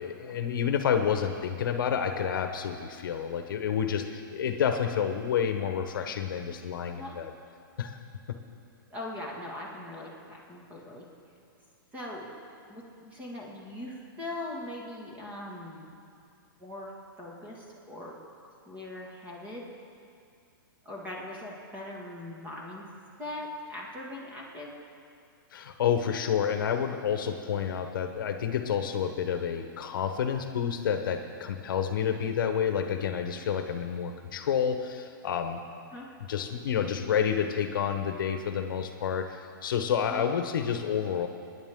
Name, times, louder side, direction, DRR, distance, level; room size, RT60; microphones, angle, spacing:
voice 1, 0.0-7.3 7.8-8.0 25.5-35.6 36.3-39.3 39.6-41.3, left 8 dB, 65° left, 6 dB, 1.0 m, -29 dB
voice 2, 8.9-11.1 11.9-12.3 12.7-15.9 16.6-18.1 18.7-19.6 20.8-22.8 23.2-24.8 35.9-36.1 40.1-40.3, left 1 dB, 15° right, -3 dB, 1.8 m, -40 dB
24.0 x 10.0 x 3.7 m, 2.4 s
hypercardioid pair, 160°, 12 cm